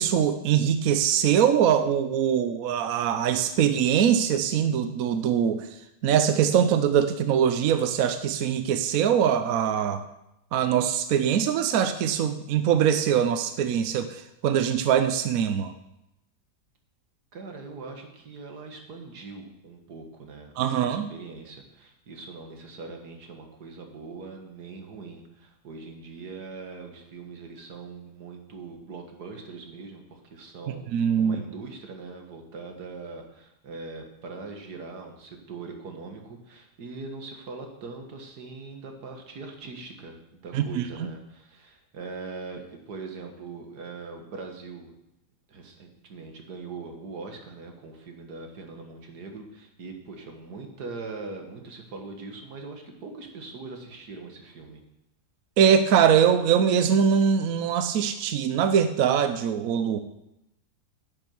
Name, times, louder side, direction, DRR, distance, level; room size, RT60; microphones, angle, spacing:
voice 1, 0.0-5.7 6.0-10.0 10.5-15.7 20.6-21.1 30.9-31.4 40.5-40.8 55.6-60.0, right 8 dB, 70° right, 10 dB, 1.0 m, -22 dB
voice 2, 17.3-44.9 45.5-54.8, right 4 dB, 85° right, 4 dB, 2.1 m, -41 dB
10.5 x 7.1 x 7.0 m, 0.85 s
omnidirectional pair, 1.7 m